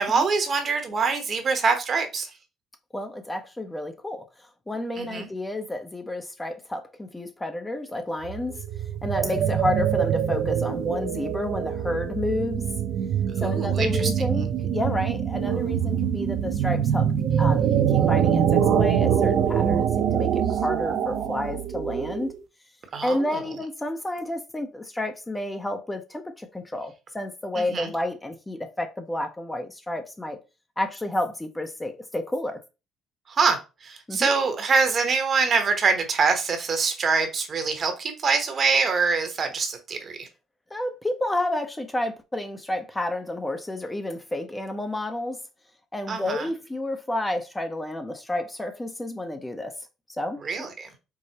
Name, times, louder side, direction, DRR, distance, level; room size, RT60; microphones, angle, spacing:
voice 1, 0.0-2.3 4.9-5.3 13.4-14.1 22.9-23.4 27.5-27.9 33.3-40.3 46.1-46.5 50.4-50.9, right 4 dB, 45° right, 0.9 m, -24 dB
voice 2, 2.9-4.2 4.7-8.6 9.0-12.7 13.4-17.1 17.4-22.3 23.0-30.4 30.8-32.6 34.1-34.3 40.7-45.4 45.9-49.7 50.2-50.7, left 1 dB, 15° left, 0.6 m, -30 dB
sound 1, 8.2-22.4, right 8 dB, 70° right, 0.5 m, -24 dB
4.7 x 2.1 x 2.8 m
supercardioid pair, 70°, 0 cm